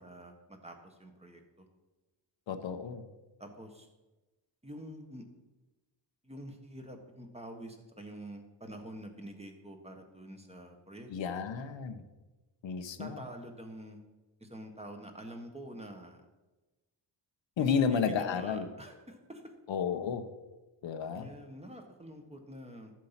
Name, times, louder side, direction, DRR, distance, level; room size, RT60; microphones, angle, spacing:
voice 1, 0.0-1.7 3.4-3.9 4.6-5.2 6.2-11.5 13.0-14.0 14.4-16.2 17.6-19.5 21.1-22.9, right 1 dB, 15° right, 4 dB, 1.4 m, -47 dB
voice 2, 2.5-3.0 11.1-12.0 12.6-13.2 17.6-18.7 19.7-20.3 20.8-21.3, left 6 dB, 85° left, 7 dB, 1.1 m, -32 dB
13.0 x 7.5 x 5.8 m, 1.1 s
wide cardioid pair, 145°, 44 cm